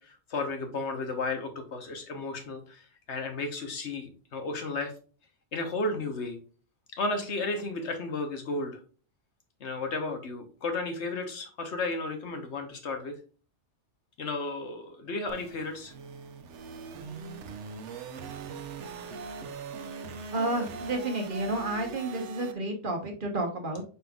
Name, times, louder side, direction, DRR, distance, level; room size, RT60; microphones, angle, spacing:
voice 1, 0.0-2.8 3.1-4.9 5.5-6.4 6.9-8.8 9.6-13.2 14.2-15.9, left 3 dB, 70° left, 5 dB, 1.3 m, -33 dB
sound 1, 15.3-22.5, right 5 dB, 80° right, 1.0 m, -41 dB
voice 2, 20.3-23.8, right 1 dB, 50° right, 3 dB, 1.1 m, -31 dB
5.3 x 4.3 x 2.3 m, 0.38 s
omnidirectional pair, 1.2 m